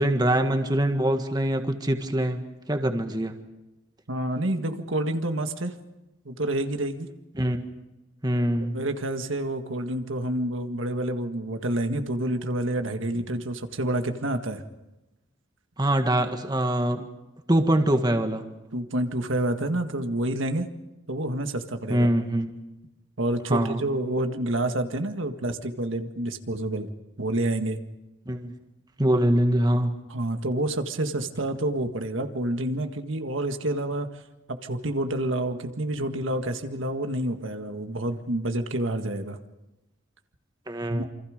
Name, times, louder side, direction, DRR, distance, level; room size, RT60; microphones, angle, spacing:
voice 1, 0.0-2.4 2.7-3.3 7.4-7.6 8.2-8.8 15.8-17.0 17.5-18.4 21.9-22.5 23.5-23.8 28.3-28.5 29.0-29.9 40.7-41.0, right 1 dB, 20° right, 6 dB, 1.6 m, -23 dB
voice 2, 4.1-5.7 6.3-7.1 8.3-8.4 8.7-14.6 18.7-20.7 21.1-22.1 23.2-26.9 27.2-27.8 30.1-34.1 34.5-39.4 40.9-41.0, right 1 dB, 85° right, 6 dB, 1.8 m, -28 dB
28.0 x 25.5 x 5.2 m, 1.0 s
head